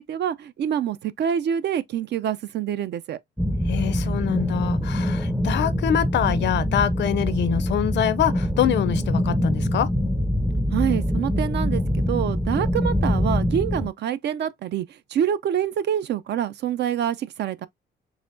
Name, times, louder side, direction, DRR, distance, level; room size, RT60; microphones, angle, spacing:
voice 1, 0.0-3.2 10.7-17.7, right 9 dB, 60° right, 0.4 m, -26 dB
sound 1, 3.4-13.9, equal, ahead, 0.5 m, -24 dB
voice 2, 3.6-9.9, left 10 dB, 60° left, 0.5 m, -25 dB
4.1 x 2.9 x 2.6 m
cardioid pair, 90°, 20 cm